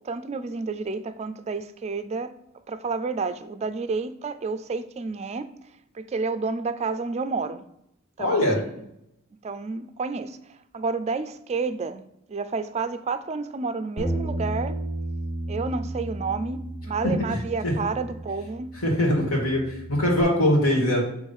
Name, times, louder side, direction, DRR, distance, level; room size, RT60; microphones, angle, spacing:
voice 1, 0.0-2.3 2.7-5.5 5.9-7.6 8.2-8.7 9.4-10.4 10.7-12.0 12.3-14.7 15.5-18.7, right 4 dB, 30° right, 0.3 m, -30 dB
voice 2, 8.2-8.6 17.0-17.1 17.6-17.7 18.7-21.0, left 1 dB, 80° left, 2.1 m, -22 dB
Bass guitar, 14.0-20.2, right 1 dB, 30° left, 1.7 m, -33 dB
7.2 x 3.1 x 5.4 m
head